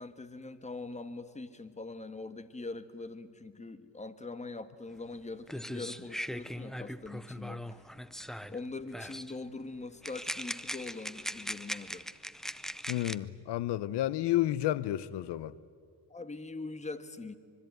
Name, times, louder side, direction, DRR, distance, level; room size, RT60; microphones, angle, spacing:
voice 1, 0.0-7.8 8.5-12.1 16.1-17.3, left 3 dB, 15° left, 1.4 m, -42 dB
sound 1, 5.1-5.2 5.5-8.6 8.9-9.3 10.0-13.2, equal, ahead, 0.6 m, -40 dB
voice 2, 12.9-15.5, left 14 dB, 80° left, 0.8 m, -31 dB
25.0 x 23.0 x 9.3 m
cardioid pair, 105°, 40 cm